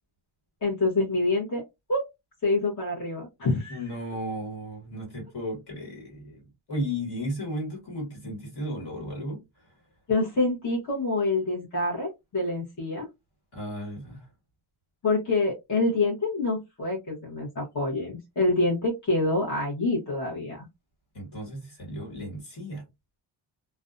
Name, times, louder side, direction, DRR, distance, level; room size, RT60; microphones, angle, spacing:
voice 1, 0.6-1.6 1.9-2.0 2.4-3.8 10.1-13.1 15.0-20.7, left 2 dB, 40° left, 0.9 m, -26 dB
voice 2, 3.7-9.7 13.5-14.3 21.1-22.8, equal, 55° left, 1.6 m, -35 dB
2.5 x 2.2 x 2.4 m
wide cardioid pair, 150°, 47 cm